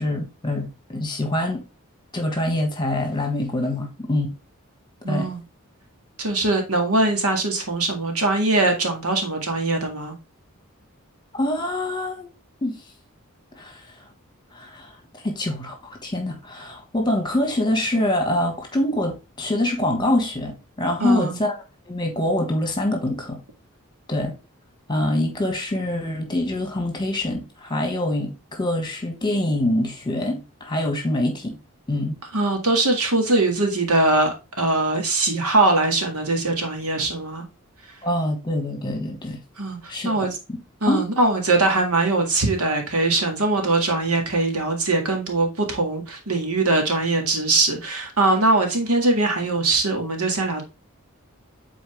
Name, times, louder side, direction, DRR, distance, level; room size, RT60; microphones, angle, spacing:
voice 1, 0.0-1.6 2.1-4.3 5.1-5.3 11.3-12.3 12.6-12.8 13.5-13.9 14.5-21.5 21.9-23.4 24.1-24.3 24.9-31.6 31.9-32.2 38.0-39.4 39.9-40.3 40.9-41.0, left 1 dB, 20° left, 1.6 m, -25 dB
voice 2, 5.0-5.4 6.2-10.1 21.0-21.4 32.3-37.4 39.6-40.4 40.8-50.6, right 2 dB, 90° right, 1.9 m, -21 dB
7.8 x 4.1 x 3.4 m
head